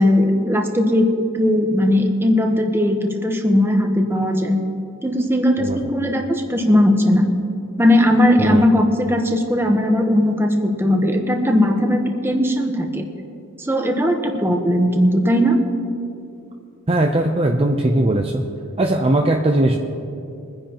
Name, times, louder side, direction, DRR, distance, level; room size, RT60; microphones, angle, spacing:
voice 1, 0.0-4.6 5.0-7.3 7.8-13.0 13.6-15.6, left 1 dB, 10° right, 3 dB, 1.0 m, -18 dB
voice 2, 16.9-18.4 18.8-19.8, right 1 dB, 25° right, 2 dB, 0.6 m, -19 dB
23.5 x 10.0 x 3.0 m, 2.6 s
head